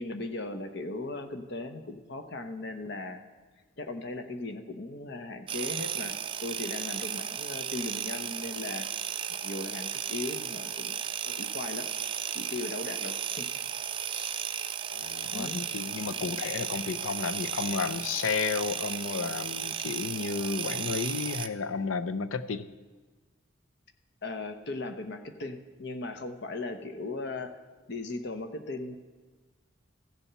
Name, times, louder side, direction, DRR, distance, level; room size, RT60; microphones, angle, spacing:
voice 1, 0.0-3.2 3.8-8.9 9.3-11.0 11.2-11.9 12.3-13.5 14.1-14.4 15.3-15.6 24.2-27.5 27.9-29.0, left 2 dB, 55° left, 8 dB, 0.9 m, -38 dB
sound 1, 5.5-21.5, right 8 dB, 25° right, 0.4 m, -35 dB
voice 2, 14.9-22.7, left 5 dB, 90° left, 12 dB, 0.5 m, -32 dB
15.0 x 7.0 x 5.7 m, 1.3 s
head